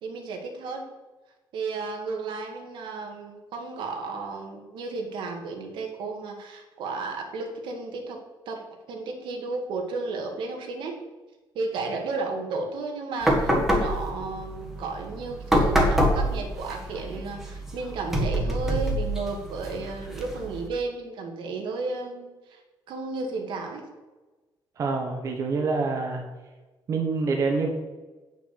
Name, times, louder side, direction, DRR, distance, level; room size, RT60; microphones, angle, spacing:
voice 1, 0.0-0.9 1.5-8.2 8.5-11.0 11.6-22.6 22.9-23.8, right 3 dB, 80° right, 2 dB, 1.9 m, -33 dB
sound 1, 13.2-20.7, equal, 5° right, 1.5 m, -26 dB
voice 2, 24.8-26.2 26.9-27.7, right 4 dB, 40° right, 2 dB, 1.2 m, -26 dB
8.7 x 6.5 x 6.9 m, 1.2 s
cardioid pair, 180°, 8 cm